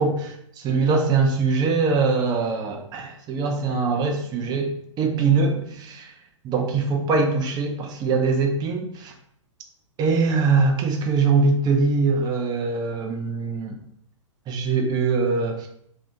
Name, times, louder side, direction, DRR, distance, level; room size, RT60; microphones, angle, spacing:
voice 1, 0.0-6.1 6.4-9.1 10.0-13.8 14.5-15.7, right 4 dB, 25° right, 3 dB, 0.6 m, -22 dB
2.7 x 2.7 x 3.4 m, 0.68 s
figure-of-eight pair, 110°, 17 cm